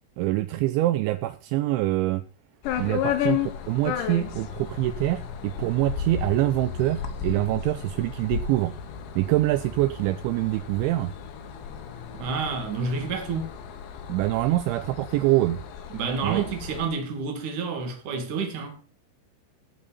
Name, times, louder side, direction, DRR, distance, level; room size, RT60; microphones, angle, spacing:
voice 1, 0.2-2.2 2.8-8.7 9.2-11.1 14.1-15.6 16.2-16.4, right 17 dB, 80° right, 2.8 m, -25 dB
sound 1, 2.6-16.9, left 9 dB, 70° left, 3.4 m, -34 dB
voice 2, 12.1-13.5 15.9-18.8, right 4 dB, 45° right, 3.2 m, -29 dB
16.5 x 7.3 x 4.2 m
omnidirectional pair, 5.7 m